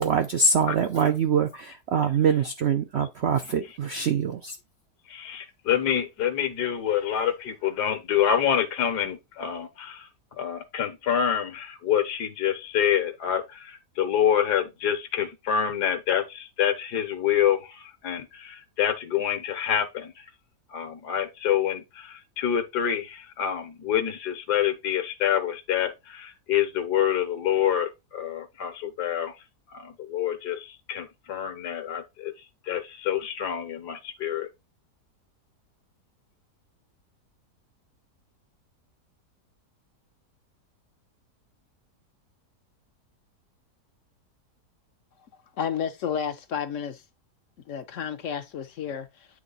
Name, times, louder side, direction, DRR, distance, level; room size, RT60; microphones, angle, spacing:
voice 1, 0.0-4.6, right 6 dB, 70° right, 0.6 m, -24 dB
voice 2, 5.1-20.3 20.7-29.3 29.7-32.3 32.6-34.5, left 9 dB, 75° left, 1.7 m, -27 dB
voice 3, 45.6-47.0 47.7-49.3, left 8 dB, 60° left, 0.9 m, -31 dB
8.8 x 3.3 x 3.9 m
omnidirectional pair, 1.8 m